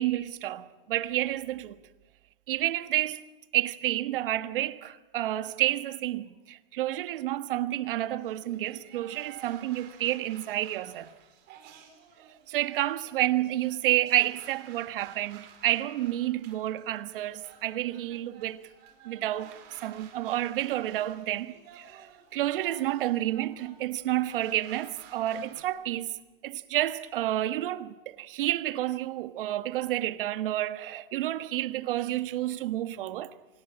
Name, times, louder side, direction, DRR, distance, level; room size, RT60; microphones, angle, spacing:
voice 1, 0.0-1.8 2.5-3.2 3.5-11.1 12.5-18.7 19.0-26.2 26.4-33.3, right 14 dB, 65° right, 1.5 m, -30 dB
sound 1, 7.9-25.6, right 8 dB, 35° right, 4.7 m, -54 dB
26.0 x 18.5 x 8.9 m
hypercardioid pair, 145°, 30 cm